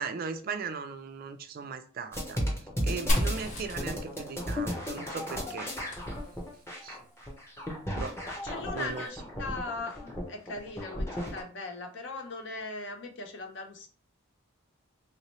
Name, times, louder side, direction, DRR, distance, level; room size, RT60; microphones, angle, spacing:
voice 1, 0.0-2.4 2.8-5.7 6.8-7.0 7.9-8.2 8.7-9.0, right 5 dB, 45° right, 0.3 m, -38 dB
sound 1, 2.1-11.4, equal, 10° left, 0.8 m, -34 dB
Fire, 3.1-6.8, equal, 35° left, 1.4 m, -35 dB
voice 2, 8.3-13.9, left 3 dB, 60° left, 0.7 m, -39 dB
3.1 x 2.8 x 3.0 m
head